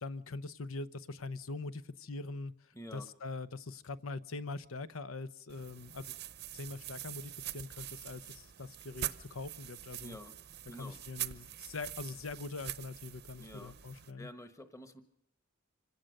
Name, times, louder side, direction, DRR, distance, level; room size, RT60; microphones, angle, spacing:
voice 1, 0.0-2.5 2.9-6.2 6.5-10.2 10.8-14.3, left 3 dB, 85° left, 0.8 m, -43 dB
voice 2, 2.7-3.1 10.0-10.3 10.7-11.0 13.4-15.0, left 1 dB, 15° left, 1.3 m, -49 dB
sound 1, 5.5-14.1, right 11 dB, 55° right, 0.8 m, -44 dB
26.0 x 18.0 x 6.6 m
head